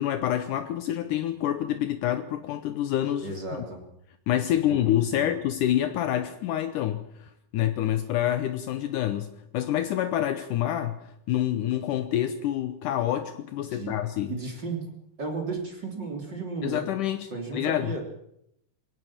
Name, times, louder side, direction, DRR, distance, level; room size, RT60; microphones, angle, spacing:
voice 1, 0.0-3.3 4.3-14.4 16.6-18.0, left 12 dB, 75° left, 10 dB, 2.3 m, -27 dB
voice 2, 3.2-3.8 4.3-5.3 13.7-13.9 14.3-14.9 15.2-16.8 17.3-18.0, right 3 dB, 30° right, 2 dB, 3.7 m, -34 dB
22.5 x 17.5 x 7.4 m, 0.76 s
omnidirectional pair, 3.9 m